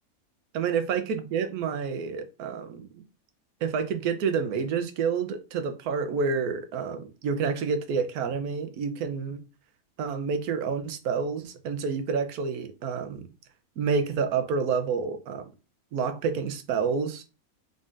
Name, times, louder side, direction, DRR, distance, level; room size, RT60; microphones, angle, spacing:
voice 1, 0.5-3.0 3.6-9.4 10.0-13.2 13.8-15.5 15.9-17.2, right 5 dB, 85° right, 1.2 m, -29 dB
3.9 x 3.8 x 2.4 m
omnidirectional pair, 1.5 m